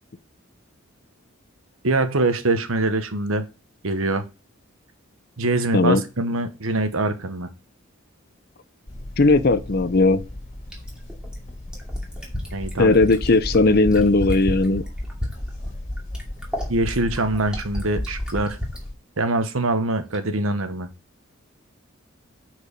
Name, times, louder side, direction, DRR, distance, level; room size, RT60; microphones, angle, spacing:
voice 1, 1.8-3.4 3.8-4.2 5.4-7.5 12.5-13.0 16.7-18.6 19.2-20.9, right 2 dB, 85° right, 1.2 m, -23 dB
sound 1, 8.9-18.9, left 1 dB, 35° left, 2.3 m, -37 dB
voice 2, 9.2-10.2 12.8-14.8, left 3 dB, 50° left, 0.6 m, -17 dB
Fill (with liquid), 10.7-18.8 20.1-20.2, left 1 dB, 5° right, 2.4 m, -30 dB
8.9 x 4.7 x 5.2 m
head